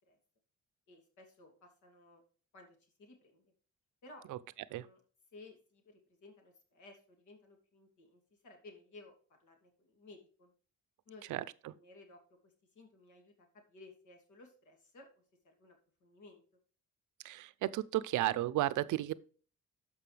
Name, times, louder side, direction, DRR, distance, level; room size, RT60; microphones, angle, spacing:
voice 1, 0.9-2.2 2.5-3.5 4.0-4.3 4.7-5.0 5.3-10.5 11.1-11.4 11.7-16.4, left 2 dB, 75° left, 2.8 m, -58 dB
voice 2, 11.3-11.7 17.2-19.1, right 15 dB, 75° right, 0.6 m, -34 dB
13.0 x 5.5 x 3.3 m
cardioid pair, 90°, 30 cm